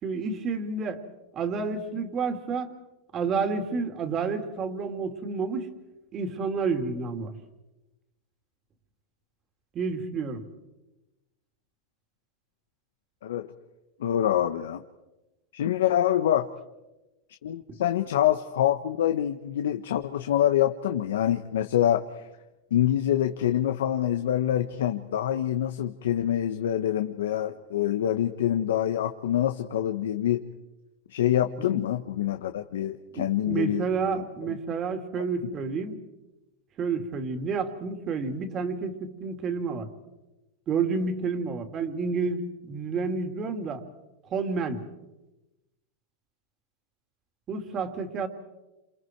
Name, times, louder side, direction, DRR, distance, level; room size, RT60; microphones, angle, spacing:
voice 1, 0.0-1.0 1.3-2.7 3.1-5.7 6.1-7.3 9.7-10.4 31.6-31.8 33.1-36.0 36.8-39.9 40.7-43.8 44.3-44.8 47.5-48.3, right 4 dB, 35° right, 7 dB, 2.9 m, -30 dB
voice 2, 13.2-13.5 14.0-14.8 15.5-16.5 17.4-22.0 22.7-30.4 31.1-33.8 34.1-34.6, left 11 dB, 85° left, 8 dB, 1.1 m, -26 dB
28.0 x 28.0 x 4.7 m, 1.0 s
supercardioid pair, 125°, 0 cm